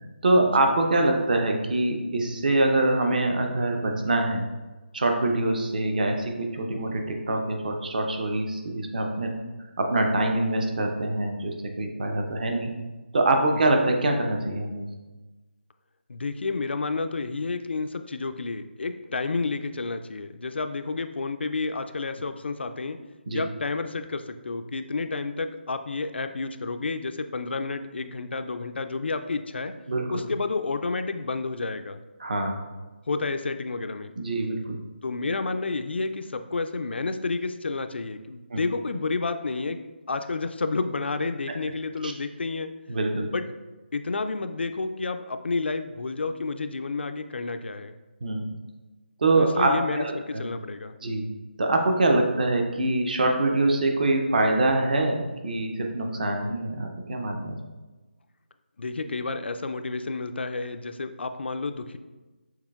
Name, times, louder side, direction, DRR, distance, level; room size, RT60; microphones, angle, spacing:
voice 1, 0.2-4.4 4.9-9.3 9.8-12.7 13.1-14.8 23.3-23.4 29.9-30.0 32.2-32.6 34.2-34.8 38.5-38.6 42.0-42.1 42.9-43.3 48.2-48.4 49.2-50.4 51.0-51.2 51.6-57.6, right 2 dB, 45° right, 3 dB, 0.6 m, -24 dB
voice 2, 16.1-23.0 23.3-29.7 30.1-32.0 33.1-34.1 35.0-39.8 40.1-42.7 43.3-43.4 43.9-47.9 49.4-51.0 58.8-62.0, left 3 dB, 70° left, 9 dB, 0.3 m, -30 dB
6.3 x 3.3 x 2.4 m, 1.2 s
figure-of-eight pair, 165°, 6 cm